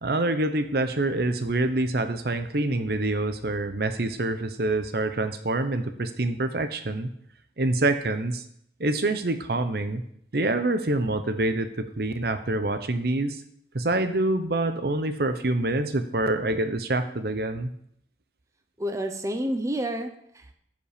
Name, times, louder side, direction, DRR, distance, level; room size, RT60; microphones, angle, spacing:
voice 1, 0.0-7.1 7.6-8.4 8.8-10.0 10.3-13.4 13.7-17.7, right 2 dB, 60° right, 9 dB, 0.9 m, -26 dB
voice 2, 18.8-20.5, right 1 dB, 20° right, 5 dB, 0.7 m, -29 dB
14.5 x 5.3 x 5.1 m, 0.68 s
head